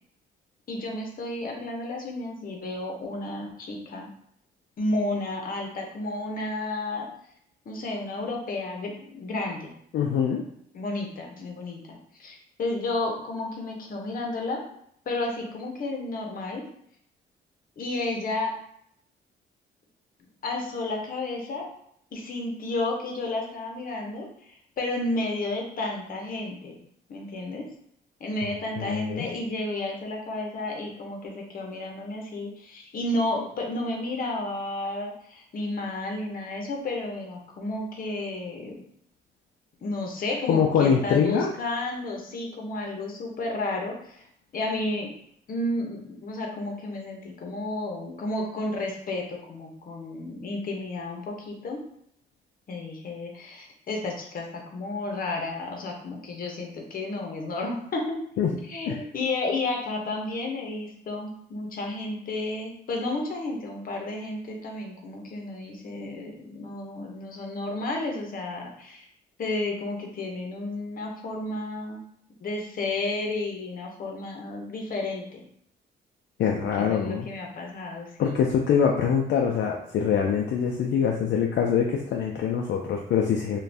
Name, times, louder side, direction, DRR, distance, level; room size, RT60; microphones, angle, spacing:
voice 1, 0.7-4.1 4.8-7.1 7.7-9.8 10.7-14.6 15.1-16.6 17.8-18.5 20.4-21.7 22.1-26.8 27.1-27.7 28.2-38.8 39.8-44.3 44.5-45.1 45.5-51.8 52.7-58.2 58.7-69.0 69.4-72.0 72.4-75.4 76.5-78.5, left 2 dB, 45° left, 1 dB, 0.8 m, -32 dB
voice 2, 9.9-10.4 28.8-29.3 40.5-41.5 58.4-58.5 58.9-59.0 76.4-77.3 78.2-83.6, left 7 dB, 65° left, 0 dB, 0.4 m, -24 dB
2.5 x 2.3 x 3.3 m, 0.69 s
cardioid pair, 90°, 20 cm